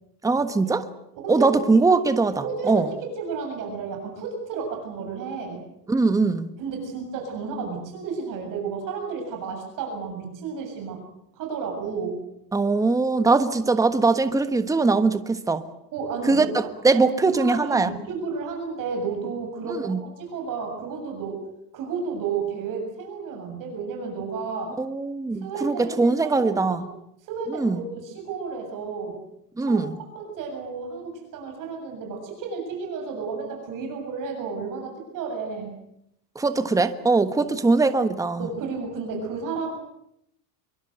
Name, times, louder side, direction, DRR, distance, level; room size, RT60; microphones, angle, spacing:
voice 1, 0.2-0.9 1.3-2.9 5.9-6.5 12.5-15.6 16.2-17.9 19.7-20.0 24.8-26.8 27.5-27.8 29.6-30.0 36.3-38.5, right 3 dB, 5° right, 10 dB, 1.3 m, -21 dB
voice 2, 1.2-1.9 2.4-5.6 6.6-11.0 11.3-12.2 15.9-16.5 16.9-17.0 17.3-21.4 21.7-24.8 25.4-26.8 27.2-29.2 29.6-29.8 30.2-35.7 37.4-37.5 38.4-39.7, right 5 dB, 40° right, 2 dB, 7.7 m, -32 dB
25.5 x 23.0 x 8.0 m, 0.78 s
supercardioid pair, 140°, 50 cm